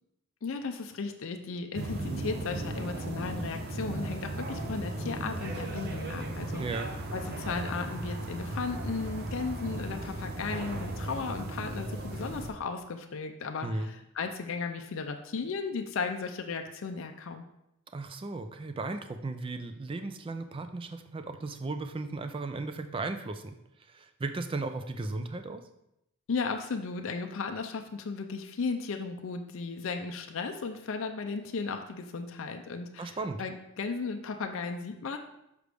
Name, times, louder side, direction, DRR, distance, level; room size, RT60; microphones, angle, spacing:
voice 1, 0.4-6.6 7.1-17.4 26.3-35.2, left 4 dB, 60° left, 5 dB, 0.4 m, -35 dB
sound 1, 1.7-12.5, right 1 dB, 45° right, 0.8 m, -36 dB
voice 2, 6.6-6.9 13.6-13.9 17.9-23.6 23.9-25.7 33.0-33.4, right 3 dB, 25° right, 8 dB, 0.3 m, -36 dB
6.6 x 4.9 x 3.4 m, 0.83 s
head